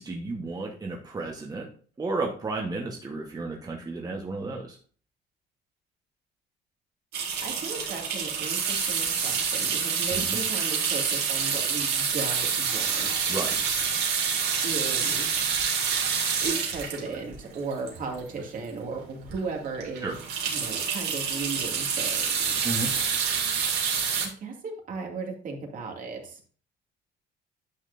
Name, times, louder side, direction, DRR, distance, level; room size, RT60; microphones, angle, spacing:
voice 1, 0.0-1.7 2.0-4.8 10.1-10.4 13.3-13.6 20.0-20.1 22.6-22.9, right 3 dB, 20° right, 0 dB, 1.3 m, -32 dB
sound 1, 7.1-18.4 18.9-19.0 19.3-19.4 19.7-24.3, right 6 dB, 75° right, 2.8 m, -27 dB
voice 2, 7.4-13.3 14.6-15.3 16.4-20.2 20.5-22.6 24.2-26.4, right 4 dB, 50° right, 1 dB, 2.4 m, -36 dB
9.9 x 6.5 x 2.6 m, 0.42 s
cardioid pair, 110°, 17 cm